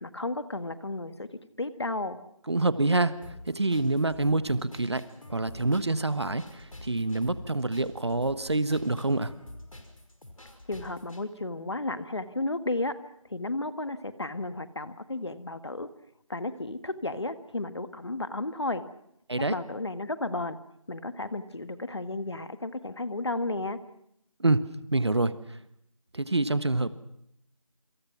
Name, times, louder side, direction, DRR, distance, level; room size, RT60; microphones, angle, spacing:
voice 1, 0.0-1.3 1.6-2.2 10.7-12.9 13.3-15.9 16.3-18.8 19.5-20.6 20.9-23.8, left 2 dB, 50° left, 11 dB, 1.7 m, -33 dB
voice 2, 2.5-9.3 19.3-19.6 24.4-24.6 24.9-25.6 26.1-26.9, right 2 dB, 50° right, 14 dB, 1.3 m, -27 dB
sound 1, 3.2-11.2, left 1 dB, 70° left, 5.3 m, -48 dB
27.5 x 26.5 x 6.0 m, 0.74 s
figure-of-eight pair, 175°, 18 cm